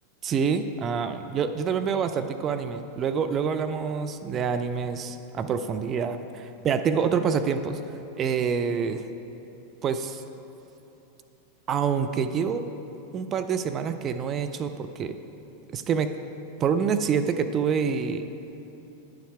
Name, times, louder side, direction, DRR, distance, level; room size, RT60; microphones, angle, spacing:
voice 1, 0.2-7.8 8.2-9.1 9.8-10.2 11.7-12.6 13.1-15.2 15.7-16.1 16.6-18.3, right 6 dB, 30° right, 8 dB, 0.4 m, -27 dB
10.5 x 7.1 x 4.7 m, 3.0 s
figure-of-eight pair, 90°, 0 cm